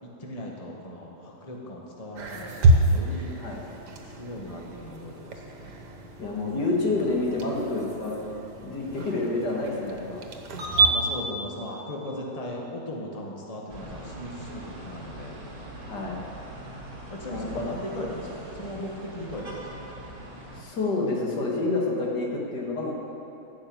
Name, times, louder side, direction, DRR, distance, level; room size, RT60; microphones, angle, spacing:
voice 1, 0.0-3.3 4.2-5.8 10.8-15.4 16.0-16.3 17.1-19.9, left 1 dB, 25° left, -2 dB, 1.6 m, -38 dB
sound 1, 2.2-10.9, right 2 dB, 85° right, 1.7 m, -27 dB
voice 2, 6.2-8.2 8.6-10.2 15.8-16.2 17.2-17.7 20.6-22.9, left 2 dB, 85° left, -2 dB, 2.4 m, -28 dB
sound 2, 13.7-20.6, right 1 dB, 60° right, 2.3 m, -42 dB
14.0 x 6.3 x 8.9 m, 2.9 s
omnidirectional pair, 1.8 m